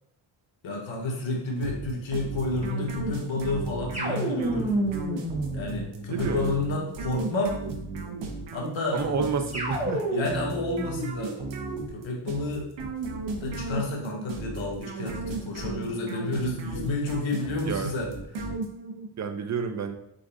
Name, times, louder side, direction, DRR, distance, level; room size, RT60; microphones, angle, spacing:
voice 1, 0.6-4.7 5.5-7.6 8.5-9.0 10.1-11.3 11.9-12.7 13.4-18.1, left 2 dB, 75° left, 0 dB, 1.3 m, -30 dB
sound 1, 1.6-19.1, right 3 dB, 65° right, 0.9 m, -35 dB
sound 2, 3.9-6.4 9.5-10.6, right 1 dB, 15° right, 1.3 m, -30 dB
voice 2, 6.1-6.6 8.9-10.0 17.6-18.0 19.2-20.0, right 5 dB, 35° right, 7 dB, 0.6 m, -30 dB
4.5 x 4.0 x 2.6 m, 0.76 s
cardioid pair, 100°, 47 cm